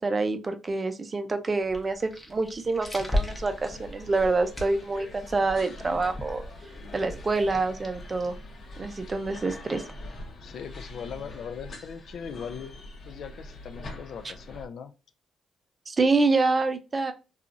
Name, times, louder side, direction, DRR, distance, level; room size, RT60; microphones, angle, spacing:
voice 1, 0.0-6.4 6.9-8.3 8.8-9.8 15.9-17.1, right 3 dB, 30° right, 8 dB, 0.5 m, -26 dB
sound 1, 1.6-8.9, left 1 dB, 10° left, 0.7 m, -37 dB
sound 2, 3.1-14.6, left 2 dB, 50° left, 0.8 m, -44 dB
voice 2, 10.4-12.7 13.1-14.9, left 7 dB, 65° left, 9 dB, 0.3 m, -39 dB
2.9 x 2.3 x 2.5 m, 0.30 s
cardioid pair, 90°, 0 cm